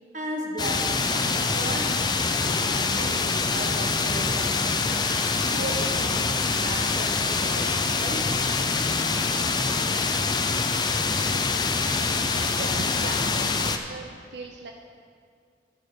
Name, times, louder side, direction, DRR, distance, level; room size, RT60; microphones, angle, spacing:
voice 1, 0.1-2.0 2.4-5.0 5.3-8.3, right 1 dB, 45° right, 1 dB, 1.3 m, -36 dB
sound 1, 0.6-13.8, left 4 dB, 25° left, 0.4 m, -25 dB
voice 2, 12.6-14.7, right 3 dB, 75° right, 2 dB, 0.6 m, -38 dB
13.5 x 5.1 x 6.2 m, 2.2 s
head